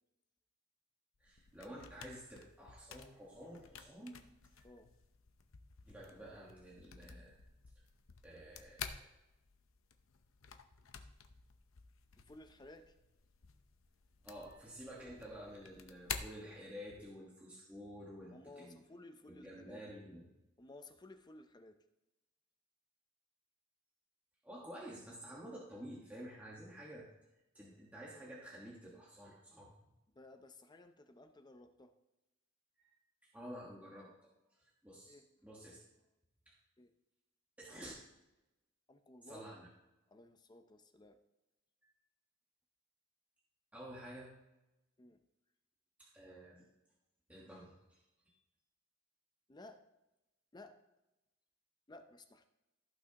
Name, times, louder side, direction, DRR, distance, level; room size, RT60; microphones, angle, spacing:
sound 1, 1.2-17.1, left 7 dB, 85° left, 0.7 m, -51 dB
voice 1, 1.2-4.2 4.5-4.7 5.9-7.4 8.2-9.1 14.2-18.8 19.3-20.3 24.4-27.1 27.5-29.7 32.8-32.9 33.2-34.3 34.6-35.2 35.4-35.8 36.4-36.5 37.6-38.0 39.2-39.7 41.8-41.9 43.7-44.3 46.0-46.7 47.3-48.4, equal, 5° right, -5 dB, 1.4 m, -51 dB
voice 2, 12.2-12.9 18.3-19.8 20.6-21.8 30.1-31.9 35.1-35.5 36.8-36.9 38.9-39.5 40.1-41.2 45.0-45.2 49.5-49.8 50.5-50.8 51.9-52.5, left 2 dB, 20° left, 7 dB, 0.6 m, -56 dB
14.5 x 6.1 x 2.9 m, 0.95 s
head